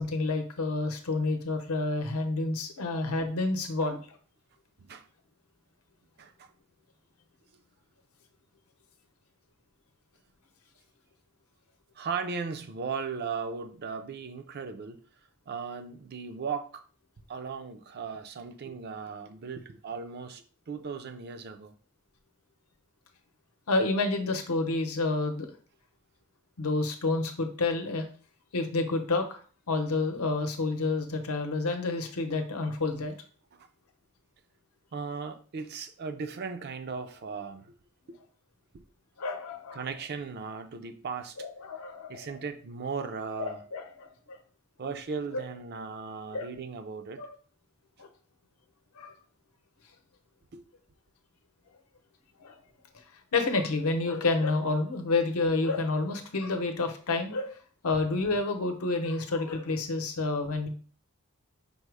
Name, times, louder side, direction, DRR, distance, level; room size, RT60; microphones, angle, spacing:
voice 1, 0.0-4.0 23.7-25.5 26.6-28.1 28.5-29.4 29.7-33.1 39.2-39.8 41.4-42.3 43.4-44.4 46.3-46.5 47.2-47.3 48.0-48.1 49.0-49.1 52.4-52.5 53.3-57.6 57.8-60.7, left 3 dB, 85° left, 0.7 m, -29 dB
voice 2, 6.2-6.5 12.0-15.0 15.5-16.9 17.3-21.7 33.5-33.7 34.9-37.8 38.1-38.2 38.7-38.8 39.7-41.4 42.1-43.6 44.8-47.2 50.5-50.6, right 5 dB, 45° right, 0.4 m, -37 dB
5.3 x 2.0 x 4.6 m
head